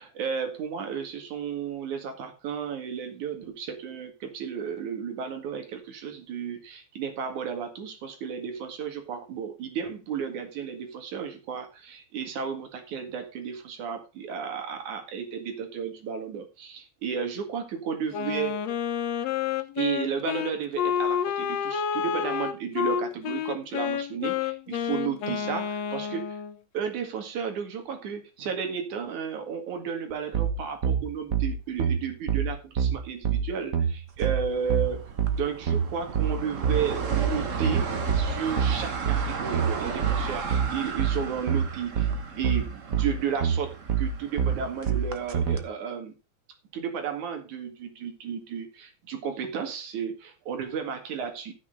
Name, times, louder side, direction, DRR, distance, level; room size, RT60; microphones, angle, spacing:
voice 1, 0.0-18.6 19.8-26.4 26.7-35.0 35.3-42.1 42.4-46.1 46.7-51.5, right 7 dB, 90° right, 5 dB, 3.4 m, -33 dB
Wind instrument woodwind instrument, 18.1-26.6, left 8 dB, 70° left, 2.1 m, -29 dB
sound 1, 30.3-45.6, right 7 dB, 45° right, 1.2 m, -26 dB
sound 2, 34.1-45.6, right 5 dB, 65° right, 0.7 m, -35 dB
13.5 x 6.1 x 5.1 m, 0.30 s
omnidirectional pair, 3.3 m